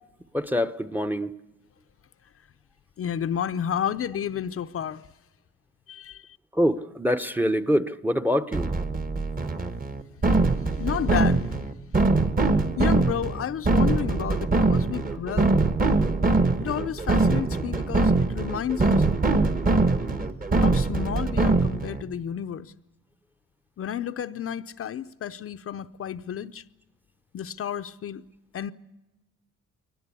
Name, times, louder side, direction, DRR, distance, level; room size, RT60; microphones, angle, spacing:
voice 1, 0.3-1.3 6.5-8.7, equal, 5° right, 0.9 m, -25 dB
voice 2, 3.0-5.0 5.9-6.2 10.8-11.5 12.8-15.6 16.6-19.1 20.6-22.7 23.8-26.6 27.3-28.2 28.5-28.7, left 9 dB, 50° left, 0.7 m, -31 dB
sound 1, 8.5-22.0, right 3 dB, 30° right, 1.4 m, -23 dB
22.5 x 19.0 x 8.4 m
cardioid pair, 90°, 30 cm